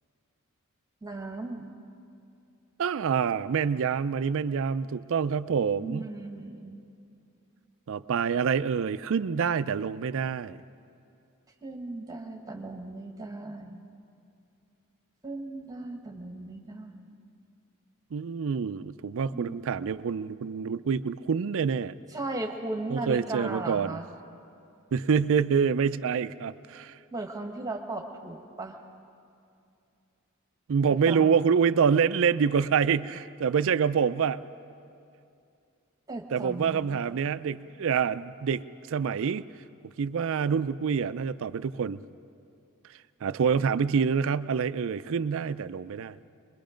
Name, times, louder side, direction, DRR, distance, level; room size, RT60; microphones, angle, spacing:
voice 1, 1.0-1.7 5.8-6.8 11.6-13.8 15.2-17.1 19.3-19.6 22.1-24.1 27.1-28.8 30.9-31.4 36.1-37.0, right 2 dB, 15° right, 3 dB, 1.4 m, -37 dB
voice 2, 2.8-6.1 7.9-10.6 18.1-21.9 22.9-24.0 24.9-27.0 30.7-34.4 36.3-38.6 38.9-39.4 40.0-42.0 43.2-46.2, right 6 dB, 65° right, 14 dB, 0.4 m, -26 dB
24.0 x 21.5 x 5.1 m, 2.5 s
head